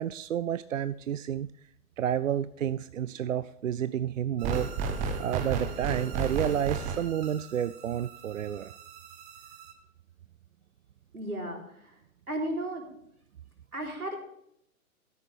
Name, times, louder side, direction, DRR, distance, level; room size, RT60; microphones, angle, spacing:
voice 1, 0.0-1.5 2.0-4.7 5.2-8.7, right 10 dB, 65° right, 15 dB, 0.5 m, -30 dB
sound 1, 4.4-9.7, right 5 dB, 15° right, 1.0 m, -34 dB
voice 2, 11.1-12.0 12.3-12.9 13.7-14.2, right 1 dB, 90° right, 0 dB, 3.9 m, -34 dB
13.5 x 10.0 x 3.4 m, 0.76 s
figure-of-eight pair, 130°, 43 cm